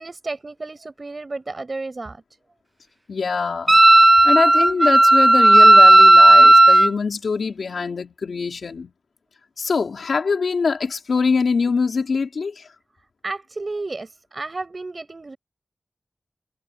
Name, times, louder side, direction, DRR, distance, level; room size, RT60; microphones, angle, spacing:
voice 1, 0.0-2.2 13.2-15.4, right 3 dB, 50° right, 6.9 m, -32 dB
voice 2, 3.1-3.8 4.2-8.9 9.6-12.7, left 5 dB, 85° left, 4.1 m, -23 dB
Wind instrument woodwind instrument, 3.7-6.9, right 1 dB, 30° right, 1.5 m, -11 dB
cardioid pair, 45°, 0 cm